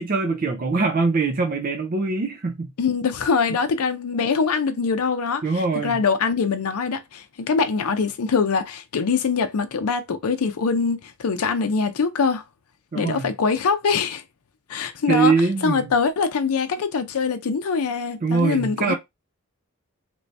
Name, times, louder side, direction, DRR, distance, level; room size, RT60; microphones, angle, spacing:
voice 1, 0.0-2.7 5.4-6.0 12.9-13.3 15.1-15.9 18.2-18.9, right 4 dB, 40° right, 0.4 m, -22 dB
voice 2, 2.8-12.4 12.9-14.2 14.7-18.9, left 5 dB, 85° left, 0.5 m, -23 dB
3.0 x 2.7 x 3.2 m
head